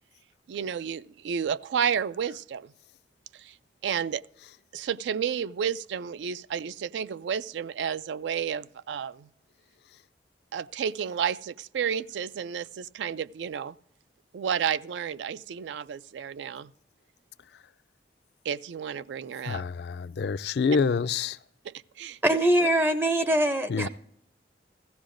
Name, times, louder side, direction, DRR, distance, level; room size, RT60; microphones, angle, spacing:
voice 1, 0.5-2.7 3.3-3.6 3.8-4.2 4.7-9.3 10.5-13.7 14.3-16.7 18.5-19.6 21.7-22.2, right 7 dB, 90° right, 0.3 m, -31 dB
voice 2, 19.5-21.4 23.7-23.9, left 5 dB, 65° left, 0.4 m, -27 dB
voice 3, 22.2-23.9, right 1 dB, 10° right, 0.4 m, -23 dB
15.5 x 15.0 x 2.5 m
head